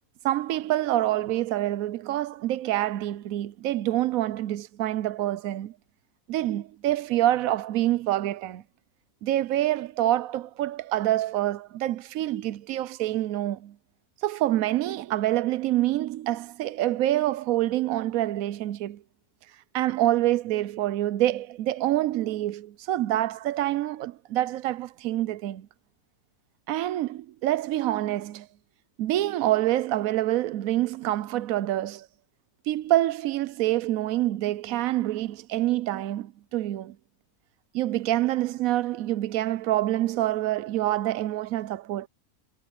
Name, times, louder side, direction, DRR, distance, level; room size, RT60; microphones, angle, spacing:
voice 1, 0.2-5.7 6.3-8.6 9.2-13.7 14.2-19.0 19.7-25.7 26.7-28.5 29.0-32.1 32.7-37.0 37.7-42.1, right 14 dB, 70° right, 1.0 m, -26 dB
omnidirectional pair, 1.6 m